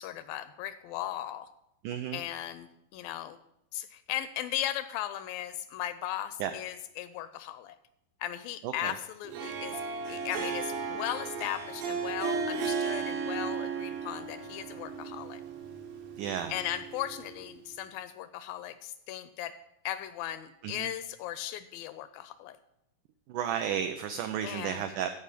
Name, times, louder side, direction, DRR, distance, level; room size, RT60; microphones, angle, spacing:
voice 1, 0.0-1.5 2.1-3.4 3.7-7.8 8.2-9.8 10.1-15.4 16.5-19.5 19.9-22.6 24.4-24.8, left 12 dB, 80° left, 13 dB, 2.1 m, -37 dB
voice 2, 1.8-2.2 6.4-6.5 8.6-8.9 16.2-16.6 20.6-20.9 23.3-25.1, right 9 dB, 90° right, 8 dB, 1.8 m, -33 dB
Harp, 9.2-17.5, right 5 dB, 70° right, 2.8 m, -35 dB
14.0 x 4.9 x 6.7 m, 0.82 s
omnidirectional pair, 4.3 m